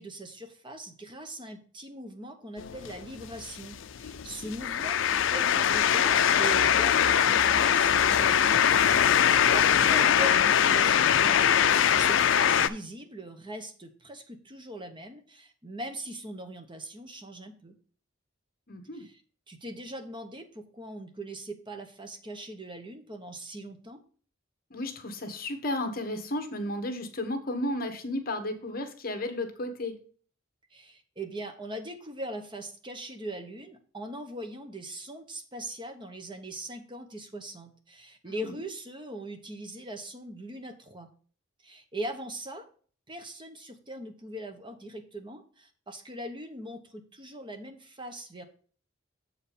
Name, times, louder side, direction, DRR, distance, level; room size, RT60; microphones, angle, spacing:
voice 1, 0.0-5.0 5.3-8.9 9.2-17.8 18.9-19.2 19.5-24.0 30.7-41.1 41.6-42.7 43.1-48.4, right 1 dB, 25° right, 6 dB, 1.0 m, -41 dB
sound 1, 2.6-12.7, left 8 dB, 65° left, 0.4 m, -22 dB
voice 2, 18.7-19.0 24.7-30.0 38.2-38.5, left 1 dB, 50° left, 7 dB, 1.2 m, -33 dB
7.5 x 4.8 x 5.0 m, 0.43 s
head